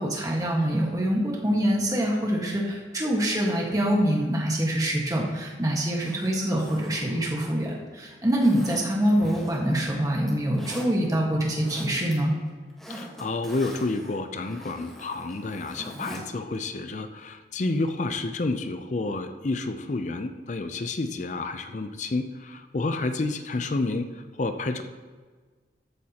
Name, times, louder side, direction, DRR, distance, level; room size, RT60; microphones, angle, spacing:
voice 1, 0.0-12.3, right 1 dB, 20° right, -2 dB, 1.5 m, -25 dB
Zipper (clothing), 5.9-7.8 8.4-9.8 10.1-10.9 11.4-12.1 12.4-16.2 16.5-16.6, equal, ahead, 1.3 m, -43 dB
voice 2, 12.9-24.8, left 2 dB, 40° left, 8 dB, 0.5 m, -30 dB
13.5 x 8.3 x 2.9 m, 1.4 s
head